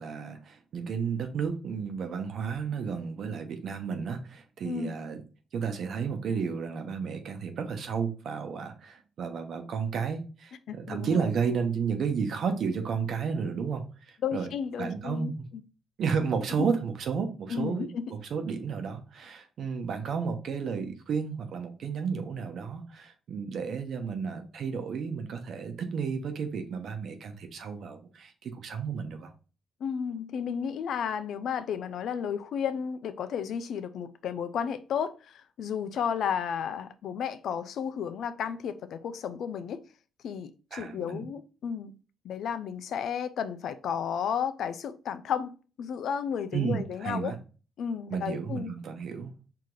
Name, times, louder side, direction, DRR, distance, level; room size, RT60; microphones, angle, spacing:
voice 1, 0.0-5.2 5.5-14.5 14.8-15.5 16.0-29.3 40.7-41.3 46.5-47.4 48.1-49.3, right 6 dB, 65° right, 0.9 m, -32 dB
voice 2, 4.6-5.0 10.7-11.3 14.2-15.3 16.6-16.7 17.5-18.1 29.8-39.8 40.2-42.0 42.2-47.3 47.8-48.8, left 7 dB, 70° left, 0.5 m, -33 dB
4.8 x 2.8 x 3.8 m
cardioid pair, 90°, 0 cm